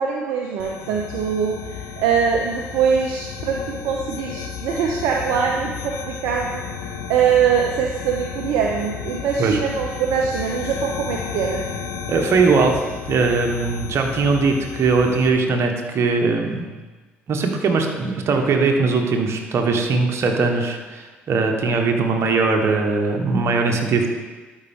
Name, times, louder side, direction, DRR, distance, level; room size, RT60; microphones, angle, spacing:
voice 1, 0.0-6.6 7.1-11.6, right 7 dB, 70° right, 1 dB, 0.6 m, -22 dB
sound 1, 0.6-15.3, left 7 dB, 75° left, 0.8 m, -33 dB
voice 2, 12.1-12.8 13.1-16.7 17.3-24.1, right 4 dB, 55° right, 3 dB, 1.4 m, -20 dB
12.0 x 5.4 x 3.7 m, 1.3 s
hypercardioid pair, 50°, 6 cm